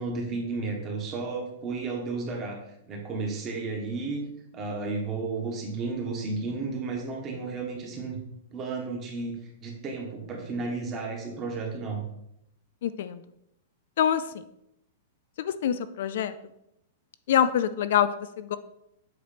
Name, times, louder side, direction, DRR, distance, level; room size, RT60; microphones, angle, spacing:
voice 1, 0.0-2.6 2.9-4.2 4.5-8.2 8.5-12.0, right 3 dB, 20° right, 1 dB, 1.3 m, -33 dB
voice 2, 12.8-13.2 14.0-14.2 15.4-16.3 17.3-18.6, left 9 dB, 60° left, 12 dB, 0.4 m, -25 dB
7.9 x 3.2 x 5.0 m, 0.80 s
supercardioid pair, 170°, 0 cm